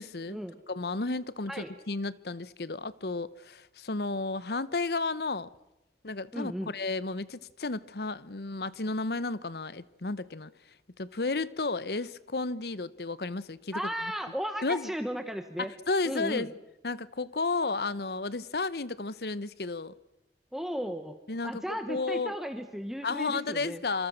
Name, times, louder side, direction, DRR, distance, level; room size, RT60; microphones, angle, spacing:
voice 1, 0.0-0.4 0.7-5.5 6.0-10.5 11.0-13.8 14.6-14.9 15.6-16.5 16.8-19.9 21.3-22.3 23.0-24.1, left 3 dB, 65° left, 0.9 m, -32 dB
voice 2, 6.3-6.7 13.7-15.7 16.0-16.5 20.5-21.2 21.4-23.8, equal, ahead, 1.2 m, -35 dB
26.5 x 26.0 x 6.5 m
head